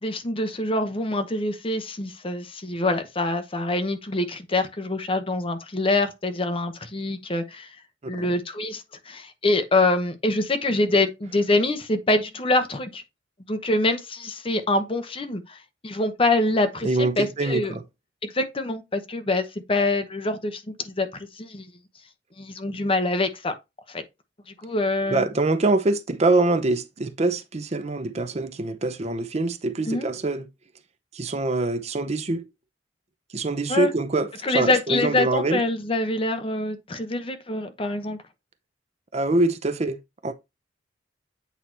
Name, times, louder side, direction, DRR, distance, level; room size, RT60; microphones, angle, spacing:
voice 1, 0.0-7.7 8.1-13.0 13.5-15.6 15.8-17.7 18.2-21.1 21.4-21.7 22.4-23.5 23.9-24.0 24.6-25.3 29.9-30.1 33.7-33.9 34.4-38.2, left 2 dB, 30° left, 0.9 m, -25 dB
voice 2, 16.8-17.8 25.1-30.5 31.1-32.5 33.3-35.6 39.1-40.3, right 2 dB, 35° right, 0.6 m, -24 dB
8.3 x 2.8 x 4.4 m
head